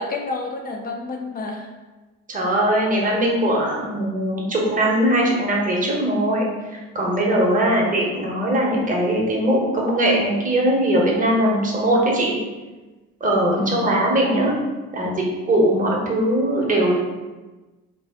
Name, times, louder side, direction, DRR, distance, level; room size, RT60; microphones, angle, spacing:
voice 1, 0.0-1.7 7.6-7.9 13.6-13.9, left 3 dB, 20° left, 2 dB, 0.5 m, -29 dB
voice 2, 2.3-12.3 13.2-14.5 14.9-15.1 15.5-17.0, right 1 dB, 20° right, -3 dB, 0.9 m, -20 dB
3.4 x 2.4 x 3.5 m, 1.2 s
figure-of-eight pair, 55°, 45 cm